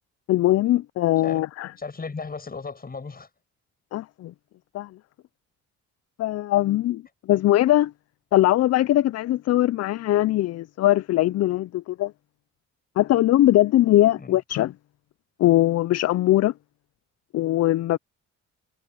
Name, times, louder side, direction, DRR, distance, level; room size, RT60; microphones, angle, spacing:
voice 1, 0.3-1.7 3.9-4.3 4.7-4.9 6.2-7.0 7.3-7.9 8.3-12.1 13.0-14.7 15.4-16.5 17.3-18.0, left 14 dB, 55° left, 0.5 m, -21 dB
voice 2, 1.8-3.3 14.2-14.4, left 4 dB, 30° left, 7.6 m, -35 dB
cardioid pair, 90°, 30 cm